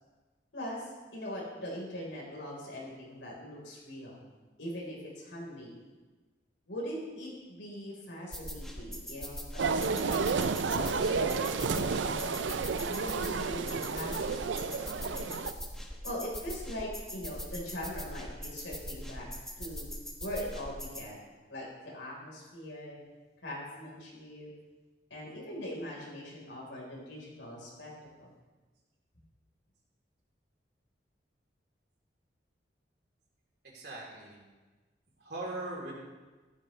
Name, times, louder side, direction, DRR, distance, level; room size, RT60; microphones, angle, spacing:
voice 1, 0.5-4.2 4.6-5.7 6.7-12.4 12.9-14.3 14.6-15.4 16.0-19.3 19.6-19.9 20.2-21.2 21.5-23.0 23.4-24.5 25.1-27.9 28.2-28.3, equal, 90° left, -3 dB, 4.3 m, -41 dB
sound 1, 8.3-21.1, equal, 5° left, 1.3 m, -42 dB
sound 2, 9.6-15.5, right 5 dB, 90° right, 0.5 m, -31 dB
voice 2, 33.6-34.4 35.2-35.9, right 2 dB, 65° right, -4 dB, 3.6 m, -40 dB
14.0 x 12.0 x 3.3 m, 1.3 s
head